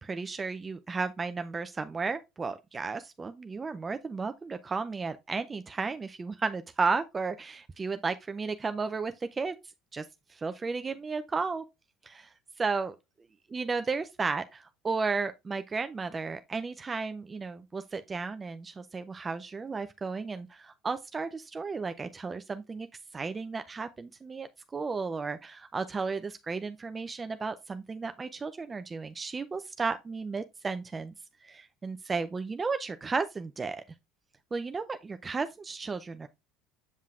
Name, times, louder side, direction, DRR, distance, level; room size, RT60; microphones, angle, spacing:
voice 1, 0.0-9.5 9.9-11.6 12.0-13.0 13.5-22.9 23.1-31.1 31.4-33.8 34.5-36.3, right 4 dB, 25° right, 0.4 m, -34 dB
7.4 x 5.5 x 2.4 m
supercardioid pair, 90°, 0 cm